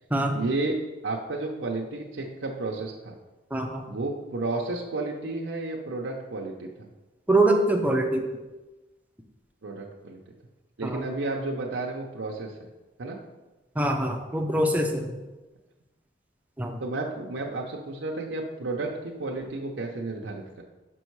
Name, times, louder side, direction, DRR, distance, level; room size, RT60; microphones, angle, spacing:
voice 1, 0.3-3.1 3.9-6.7 9.6-10.2 10.8-12.7 13.0-13.2 16.8-20.6, right 2 dB, 85° right, -1 dB, 0.7 m, -32 dB
voice 2, 3.5-3.8 7.3-8.3 10.8-11.1 13.8-15.1 16.6-16.8, right 1 dB, 10° right, 3 dB, 0.6 m, -24 dB
6.2 x 5.4 x 4.7 m, 1.1 s
head